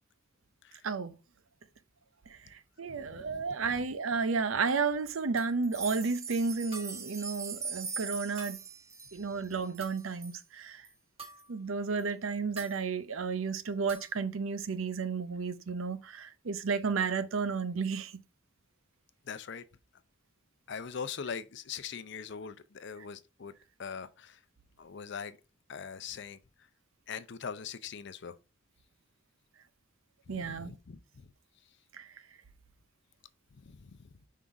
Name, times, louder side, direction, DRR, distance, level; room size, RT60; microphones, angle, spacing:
voice 1, 0.8-1.1 2.3-8.6 9.1-10.9 11.5-18.2 23.0-23.1 30.3-30.7 31.9-32.1, right 5 dB, 85° right, 0.6 m, -32 dB
voice 2, 2.9-3.4 19.3-19.6 20.7-23.5 23.8-24.4 24.8-25.4 25.7-26.4 27.1-28.3 30.3-31.3 33.5-34.0, left 6 dB, 60° left, 0.5 m, -42 dB
sound 1, 5.4-5.6 6.7-7.1 8.4-8.7 9.8-10.2 11.2-11.6 12.6-12.9 13.9-14.2, right 3 dB, 30° right, 1.3 m, -49 dB
sound 2, 5.6-10.4 10.8-10.9 11.4-11.5 12.0-12.1, right 5 dB, 15° right, 0.7 m, -41 dB
5.5 x 3.7 x 4.7 m
head